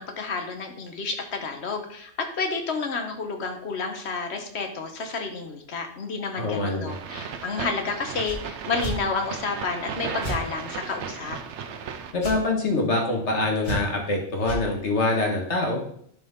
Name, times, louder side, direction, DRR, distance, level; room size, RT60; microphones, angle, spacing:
voice 1, 0.0-11.4, left 4 dB, 75° left, 5 dB, 1.4 m, -30 dB
voice 2, 6.4-7.0 12.1-15.9, left 2 dB, 90° left, 1 dB, 2.0 m, -25 dB
sound 1, 6.9-12.1, right 6 dB, 85° right, 1.0 m, -36 dB
sound 2, 8.2-8.4 8.8-9.0 10.2-10.4 12.2-12.4 13.6-14.0 14.4-14.6, right 2 dB, 45° left, 3.0 m, -31 dB
11.0 x 5.0 x 3.8 m, 0.65 s
omnidirectional pair, 1.1 m